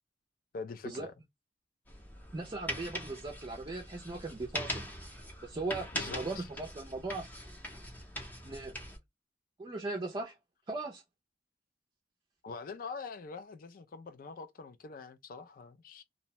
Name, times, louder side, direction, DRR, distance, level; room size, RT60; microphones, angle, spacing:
voice 1, 0.5-1.1 5.9-6.5 12.4-16.0, left 4 dB, 50° left, 0.4 m, -44 dB
sound 1, 1.9-9.0, equal, 10° left, 0.7 m, -42 dB
voice 2, 2.3-4.9 5.4-7.2 8.4-8.7 9.6-10.4 10.7-11.0, right 3 dB, 25° right, 0.4 m, -38 dB
2.6 x 2.1 x 2.8 m
head